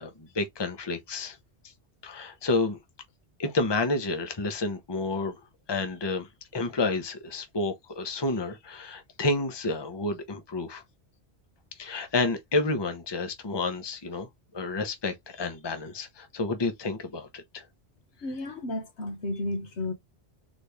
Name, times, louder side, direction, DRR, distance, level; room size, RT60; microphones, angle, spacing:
voice 1, 0.0-1.4 2.0-2.8 3.4-5.4 5.7-6.3 6.5-10.8 11.8-14.3 14.5-17.6, left 3 dB, 25° left, 0.9 m, -30 dB
voice 2, 18.2-19.9, left 2 dB, 85° left, 1.6 m, -32 dB
4.1 x 3.2 x 3.4 m
omnidirectional pair, 1.1 m